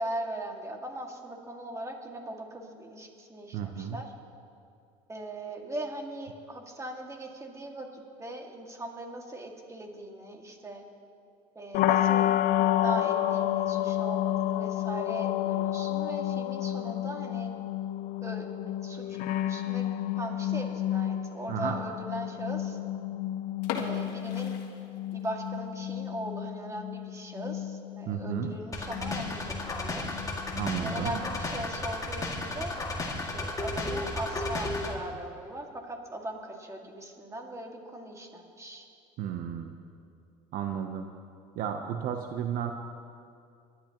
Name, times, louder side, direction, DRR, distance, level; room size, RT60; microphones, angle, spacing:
voice 1, 0.0-4.1 5.1-10.8 11.6-17.5 18.2-19.2 19.4-19.9 20.1-22.8 23.8-24.6 25.1-30.1 30.8-32.8 33.3-38.8, right 1 dB, 20° right, 2 dB, 2.1 m, -39 dB
voice 2, 3.5-4.0 21.5-21.8 28.1-28.5 30.5-31.2 39.2-39.7 40.5-41.1 41.5-42.7, right 9 dB, 60° right, 6 dB, 0.8 m, -33 dB
sound 1, 11.7-31.6, left 12 dB, 60° left, 0.5 m, -31 dB
sound 2, 23.6-25.5 25.8-25.9 26.4-26.6 27.0-27.1 27.4-27.5 28.2-28.5, left 6 dB, 80° left, 1.5 m, -38 dB
sound 3, 28.7-34.9, left 2 dB, 20° left, 2.0 m, -34 dB
24.0 x 11.5 x 3.0 m, 2.5 s
supercardioid pair, 95°, 16 cm